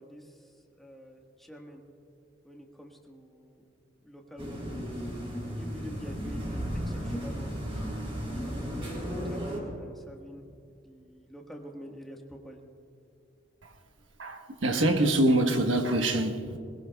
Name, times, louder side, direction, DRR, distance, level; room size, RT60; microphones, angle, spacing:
voice 1, 0.0-1.8 2.4-3.6 4.0-4.9 5.5-6.6 6.8-7.5 8.3-10.4 10.8-12.6, equal, ahead, 1.5 m, -47 dB
sound 1, 4.4-9.6, equal, 30° right, 3.3 m, -34 dB
voice 2, 14.2-16.6, right 1 dB, 85° right, 1.3 m, -25 dB
21.0 x 21.0 x 2.3 m
head